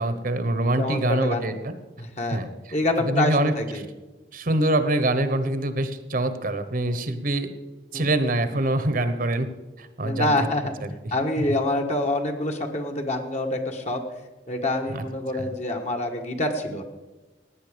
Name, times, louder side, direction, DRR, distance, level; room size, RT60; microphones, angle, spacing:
voice 1, 0.0-1.7 2.3-2.5 3.0-3.5 4.3-7.5 7.9-9.5 9.8-10.3 14.9-15.0 15.3-15.5, right 1 dB, 55° right, 11 dB, 1.1 m, -24 dB
voice 2, 0.8-1.4 2.0-2.4 2.7-3.8 7.9-8.1 10.0-10.7 11.1-14.0 14.5-16.8, left 1 dB, 40° left, 3 dB, 1.6 m, -26 dB
17.0 x 9.8 x 5.2 m, 1.2 s
head